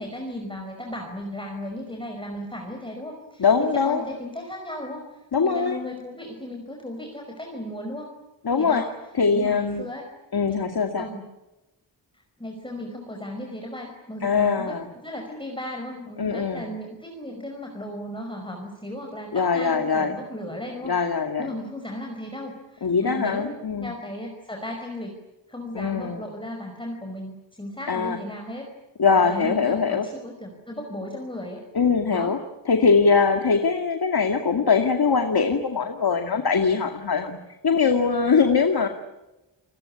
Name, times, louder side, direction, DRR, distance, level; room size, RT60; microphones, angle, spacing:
voice 1, 0.0-8.1 8.6-8.9 9.3-10.1 10.5-10.6 11.0-11.3 12.4-21.0 21.4-25.2 25.5-27.3 27.6-28.7 29.2-31.6 32.1-32.4, left 1 dB, 10° left, 1 dB, 5.4 m, -35 dB
voice 2, 3.4-4.0 5.3-5.8 8.4-8.8 9.1-9.8 10.3-11.1 14.2-14.9 16.2-16.7 19.3-20.2 20.8-21.5 22.8-23.9 25.7-26.2 27.9-28.2 29.0-30.1 31.7-32.4 32.7-37.4 37.6-38.9, left 5 dB, 55° left, 5 dB, 2.3 m, -22 dB
29.0 x 20.0 x 9.9 m, 1.0 s
wide cardioid pair, 95°, 44 cm